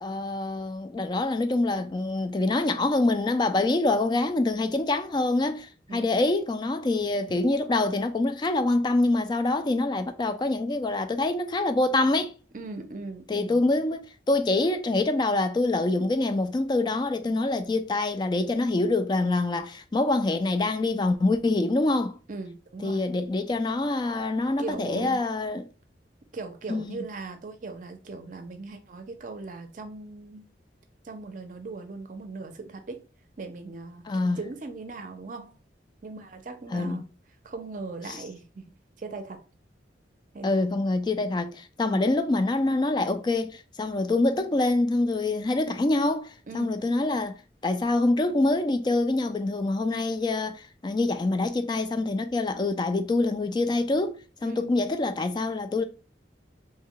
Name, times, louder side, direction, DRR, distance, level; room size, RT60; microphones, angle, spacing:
voice 1, 0.0-12.3 13.3-22.1 22.8-25.7 26.7-27.0 34.1-34.4 36.7-37.0 38.1-38.2 40.4-47.4 47.6-55.8, left 2 dB, 25° left, 0.3 m, -25 dB
voice 2, 12.5-13.6 22.3-23.0 24.6-25.2 26.3-30.4 31.0-33.0 33.4-35.6 36.0-37.0 37.4-38.7 39.0-39.4 40.3-40.6 41.9-42.1 46.5-46.8 54.4-54.7, right 3 dB, 45° right, 0.5 m, -39 dB
3.1 x 2.2 x 3.7 m
head